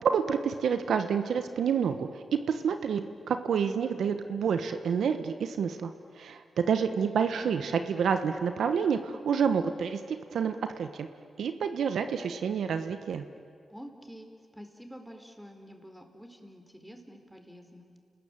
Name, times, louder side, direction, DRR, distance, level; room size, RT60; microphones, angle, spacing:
voice 1, 0.0-11.1 11.4-13.2, right 7 dB, 80° right, 8 dB, 1.2 m, -29 dB
voice 2, 13.7-17.9, equal, 5° right, 5 dB, 4.3 m, -48 dB
30.0 x 20.5 x 9.0 m, 2.2 s
cardioid pair, 55°, 0 cm